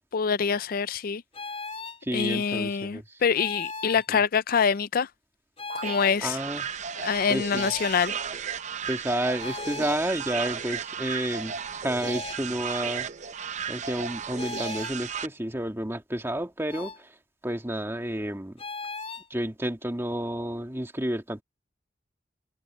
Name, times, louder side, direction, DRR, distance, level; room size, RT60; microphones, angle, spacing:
voice 1, 0.1-1.2 2.1-5.1 5.7-6.4 7.0-8.1, left 6 dB, 50° left, 0.4 m, -25 dB
sound 1, 1.3-2.0 3.3-4.1 5.6-6.2 7.5-8.1 9.4-10.0 12.0-12.4 14.4-15.0 16.7-17.0 18.6-19.3, left 4 dB, 35° left, 4.9 m, -37 dB
voice 2, 2.0-3.0 6.2-6.7 7.3-7.7 8.9-13.1 13.7-16.9 17.4-18.5 19.3-21.4, right 1 dB, 15° right, 1.9 m, -30 dB
Space Alarm, 5.7-15.3, right 7 dB, 40° right, 0.6 m, -35 dB
head